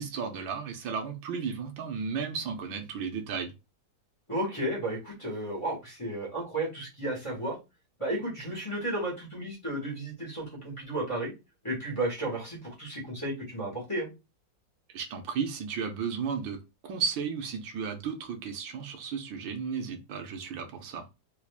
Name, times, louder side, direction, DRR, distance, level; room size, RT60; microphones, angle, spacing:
voice 1, 0.0-3.5 14.9-21.0, right 6 dB, 90° right, 1.5 m, -34 dB
voice 2, 4.3-7.6 8.0-11.3 11.6-14.1, right 1 dB, 15° left, 1.5 m, -33 dB
3.5 x 3.4 x 2.4 m
omnidirectional pair, 2.1 m